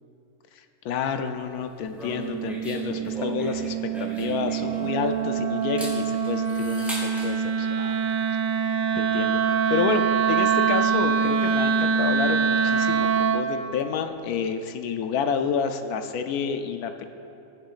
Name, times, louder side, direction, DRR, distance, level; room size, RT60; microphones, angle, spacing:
voice 1, 0.8-8.0 9.0-10.0 10.3-17.1, left 6 dB, 80° left, 7 dB, 1.1 m, -29 dB
sound 1, 1.9-5.2 5.6-7.3, right 1 dB, ahead, 2.1 m, -37 dB
Wind instrument woodwind instrument, 2.0-13.5, right 6 dB, 70° right, 0.9 m, -24 dB
14.5 x 10.0 x 2.4 m, 2.8 s
omnidirectional pair, 1.6 m